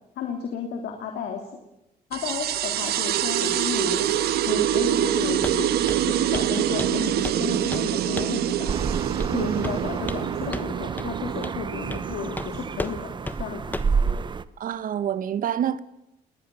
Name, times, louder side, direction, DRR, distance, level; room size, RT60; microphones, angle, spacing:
voice 1, 0.2-1.5 2.1-4.1 4.4-5.7 6.0-8.7 9.3-13.8, left 6 dB, 70° left, 3.1 m, -33 dB
sound 1, 2.1-13.1, right 11 dB, 70° right, 1.4 m, -26 dB
Walk footsteps, 5.4-5.6 5.9-6.1 6.3-6.5 6.8-7.4 7.7-7.9 8.2-8.4 9.2-9.4 9.6-10.3 10.5-10.7 11.0-11.1 11.4-11.6 11.9-12.1 12.4-12.5 12.8-13.0 13.3-13.4 13.7-14.0, left 2 dB, 10° left, 1.2 m, -33 dB
sound 2, 8.7-14.4, right 5 dB, 25° right, 0.9 m, -30 dB
voice 2, 9.3-9.7 14.6-15.8, right 9 dB, 55° right, 1.2 m, -27 dB
30.0 x 20.0 x 6.9 m
cardioid pair, 110°, 17 cm